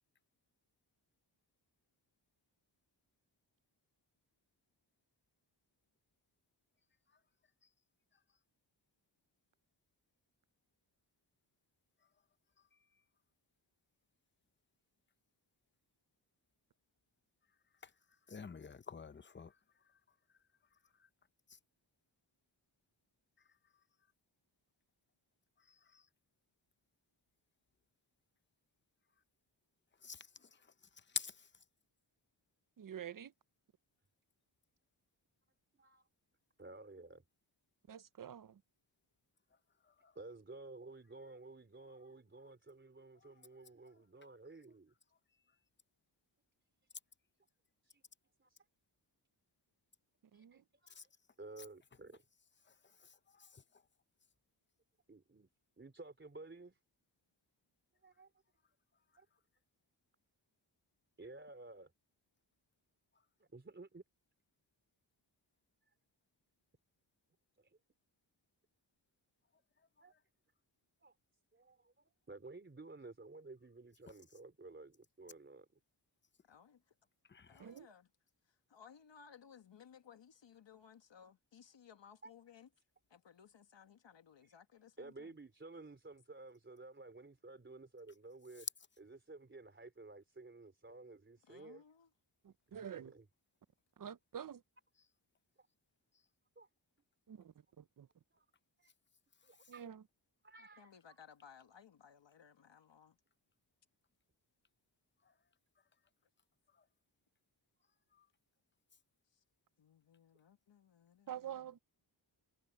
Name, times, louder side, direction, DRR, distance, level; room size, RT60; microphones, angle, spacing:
voice 1, 18.3-19.6 21.0-21.1 21.5-21.6 25.6-26.1 30.0-31.5 39.8-40.1 43.2-43.5 50.9-51.1 51.6-51.7 52.7-53.8 77.3-77.6 99.6-99.7 105.2-105.3 106.7-106.8 108.1-108.3, left 5 dB, 25° left, 0.6 m, -49 dB
voice 2, 32.8-33.3 37.9-38.6 50.3-50.6 77.6-77.9 92.4-93.1 94.0-94.6 97.3-98.1 99.7-100.0 111.3-111.8, right 9 dB, 45° right, 0.6 m, -48 dB
voice 3, 36.6-37.2 40.2-44.9 47.8-48.0 48.4-48.6 50.3-51.1 51.4-52.2 55.1-55.5 55.8-56.8 58.0-58.3 59.2-59.3 61.2-61.9 63.4-64.0 67.6-67.8 70.0-70.1 71.0-71.1 71.5-75.7 77.6-77.7 82.2-82.3 85.0-88.7 89.0-91.8 92.7-93.3 96.6-96.7 98.3-98.5 98.8-98.9 99.4-99.9 100.4-101.2, right 3 dB, 25° right, 3.5 m, -54 dB
voice 4, 76.5-77.0 77.5-78.1 78.5-82.7 83.1-85.3 91.5-92.1 100.6-103.2 109.3-109.4 109.8-111.8, left 7 dB, 70° left, 1.7 m, -61 dB
wide cardioid pair, 145°, 45 cm